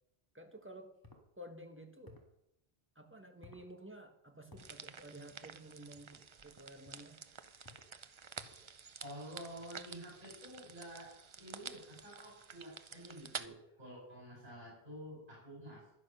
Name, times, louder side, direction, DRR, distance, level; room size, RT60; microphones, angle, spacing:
voice 1, 0.3-0.9 1.4-2.2 2.9-7.2, right 1 dB, 10° right, 5 dB, 1.3 m, -52 dB
sound 1, 1.0-1.3 2.0-2.4 3.4-3.7 4.5-4.7 6.0-6.2 6.8-7.1 7.6-7.9 8.3-8.7, left 2 dB, 20° left, 1.8 m, -58 dB
sound 2, 4.6-13.5, right 6 dB, 35° right, 0.5 m, -50 dB
voice 2, 9.0-15.9, equal, 55° right, -5 dB, 5.9 m, -50 dB
11.0 x 10.5 x 6.6 m, 0.82 s
omnidirectional pair, 1.0 m